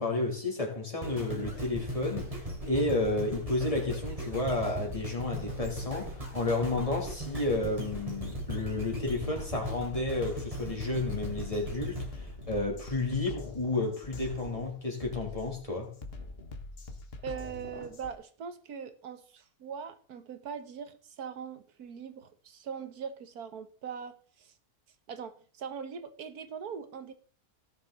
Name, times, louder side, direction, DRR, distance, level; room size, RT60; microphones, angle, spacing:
voice 1, 0.0-2.3 2.7-15.9, left 2 dB, 20° left, -1 dB, 3.4 m, -31 dB
sound 1, 1.0-13.2 13.8-13.9, equal, 20° right, 3.6 m, -38 dB
Drum kit, 10.3-10.4 10.9-18.1, left 2 dB, 40° left, 1.5 m, -44 dB
voice 2, 17.2-24.5 25.1-27.1, right 7 dB, 85° right, 11 dB, 1.7 m, -41 dB
17.5 x 7.3 x 4.1 m, 0.43 s
omnidirectional pair, 1.6 m